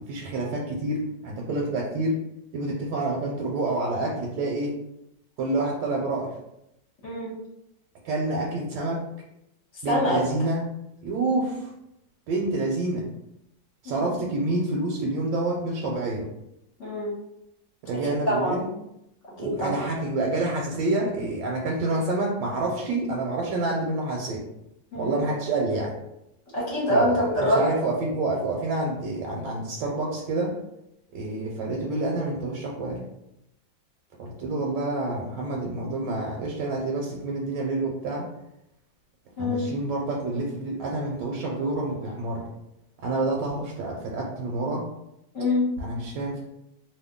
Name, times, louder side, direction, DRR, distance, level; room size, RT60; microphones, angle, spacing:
voice 1, 0.1-2.2 2.5-4.7 5.4-6.4 8.0-9.0 9.8-10.6 11.0-11.7 12.3-13.1 13.8-16.3 17.8-18.7 19.4-24.4 24.9-25.9 26.9-30.5 31.1-33.1 34.2-38.3 39.4-42.4 43.0-44.8 45.8-46.4, right 2 dB, 80° right, -1 dB, 1.3 m, -28 dB
voice 2, 9.9-10.2 13.8-14.2 16.8-17.1 17.9-18.6 19.4-19.8 24.9-25.2 26.5-27.6 39.4-39.7 45.3-45.7, left 1 dB, 50° left, -5 dB, 1.1 m, -25 dB
2.8 x 2.5 x 3.6 m, 0.84 s
omnidirectional pair, 2.0 m